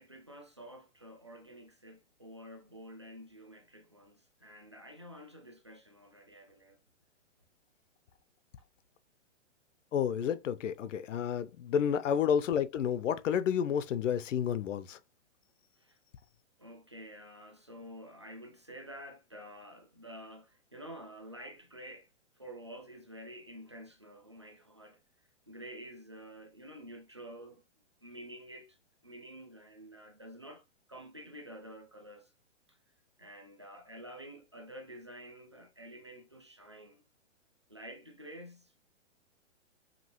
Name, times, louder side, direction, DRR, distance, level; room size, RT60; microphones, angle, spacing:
voice 1, 0.0-6.8 11.7-11.9 15.8-16.0 16.6-22.1 22.4-25.0 25.5-27.6 28.0-28.8 29.0-32.3 32.7-32.8 33.2-37.0 37.7-38.8, equal, 25° right, 0.4 m, -49 dB
voice 2, 9.9-15.0, left 8 dB, 85° left, 0.6 m, -30 dB
5.2 x 2.7 x 2.9 m
hypercardioid pair, 180°, 36 cm